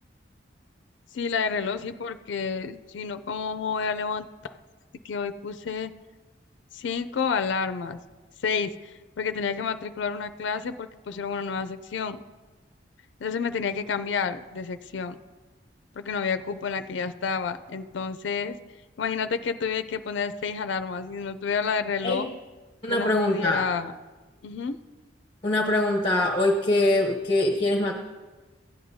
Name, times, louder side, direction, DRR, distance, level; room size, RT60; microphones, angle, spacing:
voice 1, 1.1-4.5 5.0-5.9 6.7-8.0 8.4-12.2 13.2-15.2 16.0-18.6 19.0-22.3 22.9-23.9 24.4-24.8, left 5 dB, 70° left, 11 dB, 0.4 m, -30 dB
voice 2, 22.8-23.7 25.4-27.9, left 1 dB, 25° left, 1 dB, 0.8 m, -23 dB
16.0 x 10.0 x 2.7 m, 1.3 s
head